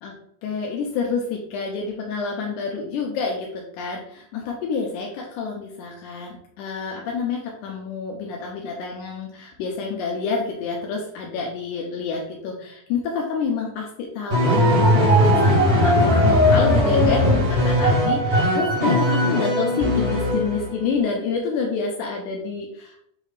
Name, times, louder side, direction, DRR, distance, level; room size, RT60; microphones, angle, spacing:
voice 1, 0.4-23.0, left 5 dB, 85° left, 0 dB, 1.9 m, -28 dB
sound 1, 14.3-20.8, equal, 45° right, 1.5 m, -18 dB
6.2 x 2.5 x 3.3 m, 0.71 s
omnidirectional pair, 4.0 m